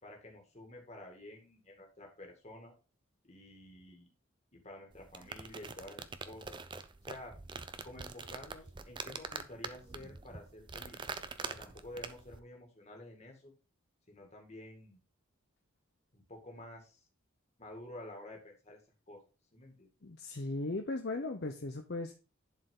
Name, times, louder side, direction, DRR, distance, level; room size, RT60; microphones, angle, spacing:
voice 1, 0.0-2.7 3.2-4.1 4.5-6.6 7.0-7.3 7.8-11.0 11.5-13.5 14.1-15.0 16.1-17.0 17.6-18.8 19.1-19.2 19.5-19.9, left 1 dB, 30° left, 1 dB, 2.1 m, -50 dB
sound 1, 4.9-12.4, right 4 dB, 20° right, 0.5 m, -45 dB
voice 2, 20.0-22.1, left 2 dB, 50° left, 4 dB, 0.7 m, -37 dB
11.0 x 4.6 x 3.8 m, 0.33 s
head